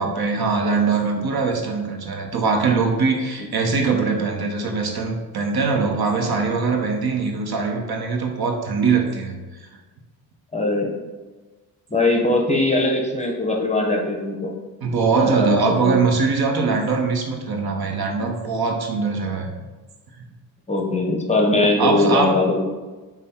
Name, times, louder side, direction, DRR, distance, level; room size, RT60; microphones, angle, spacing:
voice 1, 0.0-9.7 14.8-19.5 21.8-22.4, right 4 dB, 50° right, 3 dB, 0.9 m, -22 dB
voice 2, 10.5-10.9 11.9-14.6 15.4-16.0 20.7-22.7, left 2 dB, 15° left, 0 dB, 0.9 m, -21 dB
5.2 x 2.3 x 4.3 m, 1.3 s
supercardioid pair, 65°, 47 cm